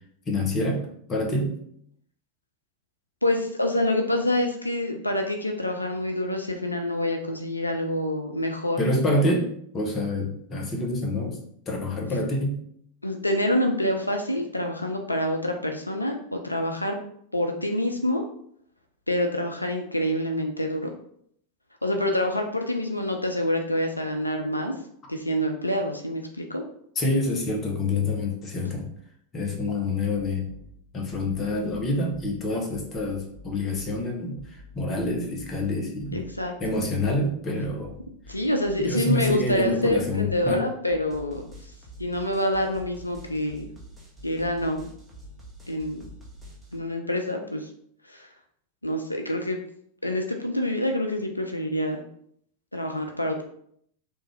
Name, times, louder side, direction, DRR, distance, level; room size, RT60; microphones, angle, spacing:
voice 1, 0.3-1.6 8.8-9.5 9.7-11.4 11.7-12.6 27.0-28.9 29.3-30.5 30.9-36.2 36.6-37.9 38.8-40.6, left 1 dB, 25° left, 1 dB, 0.8 m, -27 dB
voice 2, 3.2-8.8 13.0-17.0 17.3-18.2 19.1-20.9 21.8-24.8 25.1-26.6 36.1-36.5 38.3-41.4 42.0-43.7 44.2-44.9 45.7-46.0 46.7-47.7 48.1-48.3 48.8-49.6 50.0-52.0 52.7-53.4, left 1 dB, 85° left, 3 dB, 0.3 m, -26 dB
sound 1, 30.5-30.7 31.1-32.4 32.7-34.0 34.4-35.6 36.0-37.3 37.6-38.9 39.3-40.5 40.9-46.8, left 1 dB, 10° right, 1.0 m, -47 dB
3.3 x 2.5 x 3.2 m, 0.67 s
figure-of-eight pair, 90°, 0 cm